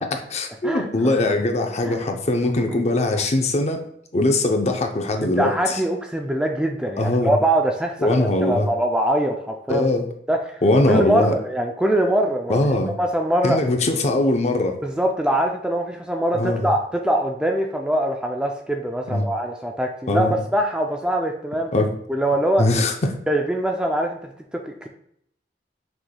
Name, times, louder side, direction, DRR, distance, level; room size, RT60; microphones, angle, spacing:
voice 1, 0.0-3.9 4.1-5.8 7.0-7.4 8.0-8.7 9.7-10.1 10.6-11.3 12.5-12.9 13.4-14.8 16.3-16.7 19.1-19.3 20.1-20.3 21.7-21.9 22.6-23.2, left 2 dB, 40° left, 4 dB, 0.6 m, -21 dB
voice 2, 0.6-1.2 1.8-2.0 2.4-2.8 3.1-3.2 5.2-9.8 10.3-10.6 10.9-12.6 13.0-13.6 14.8-21.7 22.1-22.7 23.3-24.2 24.5-24.9, right 1 dB, 5° right, 2 dB, 0.3 m, -23 dB
6.0 x 3.3 x 2.2 m, 0.71 s
head